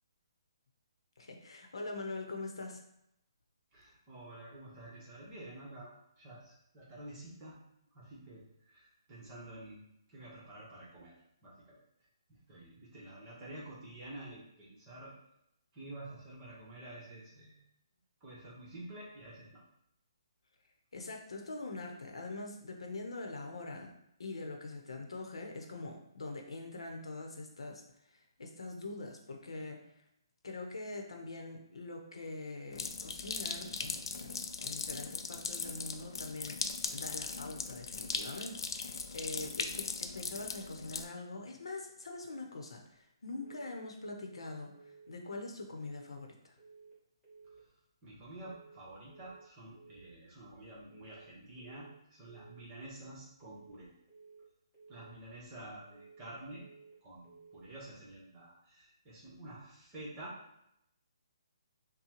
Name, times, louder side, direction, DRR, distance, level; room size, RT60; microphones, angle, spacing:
voice 1, 1.2-2.8 20.9-23.9 24.2-27.8 28.1-29.8 30.4-36.6 36.9-44.7 45.1-46.5, left 2 dB, 85° left, 2 dB, 0.8 m, -43 dB
voice 2, 3.7-7.6 7.9-9.8 10.1-11.1 11.4-11.8 12.3-15.1 15.7-17.6 18.2-19.6 48.0-53.9 54.9-56.6 57.0-60.4, right 1 dB, 20° right, -6 dB, 1.1 m, -49 dB
sound 1, 32.7-41.0, left 5 dB, 60° left, 0.4 m, -39 dB
sound 2, 43.4-43.8 44.1-44.5 44.7-45.1 45.9-46.3 46.6-47.0 47.2-47.6 48.4-48.8 49.1-49.5 49.7-50.1 50.9-51.3 51.6-52.0 52.2-52.6 53.4-53.8 54.1-54.5 54.7-55.1 55.9-56.3 56.6-57.0 57.2-57.6, right 4 dB, ahead, 1.3 m, -57 dB
5.6 x 2.2 x 3.0 m, 0.79 s
hypercardioid pair, 165°, 3 cm